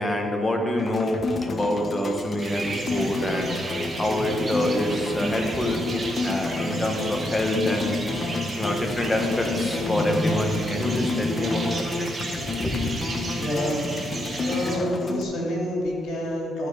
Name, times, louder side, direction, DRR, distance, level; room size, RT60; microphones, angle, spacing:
voice 1, 0.0-3.6 4.0-5.8 6.2-11.6 12.6-12.7, left 1 dB, 20° left, 2 dB, 1.4 m, -26 dB
sound 1, 0.8-15.2, left 3 dB, 40° left, 0.9 m, -30 dB
sound 2, 2.4-14.8, right 2 dB, 35° right, 1.5 m, -34 dB
voice 2, 7.9-8.4 13.4-13.8 14.4-16.7, equal, 75° left, -2 dB, 2.4 m, -29 dB
13.5 x 4.6 x 5.1 m, 2.5 s
cardioid pair, 90°, 0 cm